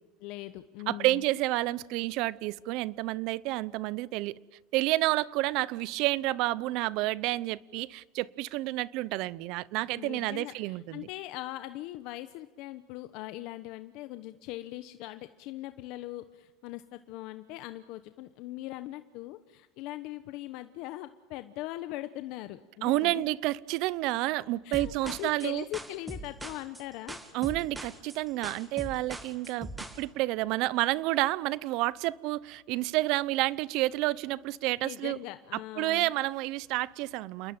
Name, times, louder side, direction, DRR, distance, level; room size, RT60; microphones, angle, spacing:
voice 1, 0.2-1.2 9.9-23.2 24.6-27.2 34.8-36.1, left 16 dB, 60° left, 10 dB, 1.0 m, -41 dB
voice 2, 0.9-4.3 4.7-11.1 22.8-25.6 27.3-29.7 30.0-35.2 35.8-37.6, right 18 dB, 60° right, 21 dB, 0.8 m, -30 dB
sound 1, 24.7-30.0, right 1 dB, 5° right, 2.3 m, -41 dB
28.5 x 21.0 x 8.9 m, 1.1 s
supercardioid pair, 140°, 0 cm